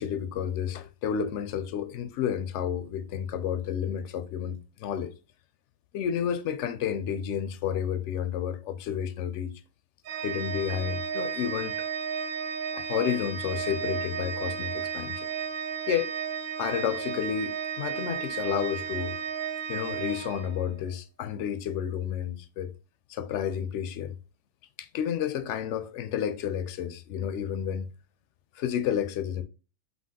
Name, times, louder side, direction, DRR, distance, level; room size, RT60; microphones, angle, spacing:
voice 1, 0.0-5.1 5.9-9.5 10.2-11.9 12.7-15.3 15.9-16.2 16.6-19.2 19.7-22.7 23.1-24.2 24.8-27.9 28.6-29.4, left 9 dB, 65° left, 0.8 m, -31 dB
Organ, 10.0-20.9, right 7 dB, 75° right, 1.0 m, -33 dB
5.6 x 2.8 x 2.7 m
omnidirectional pair, 1.4 m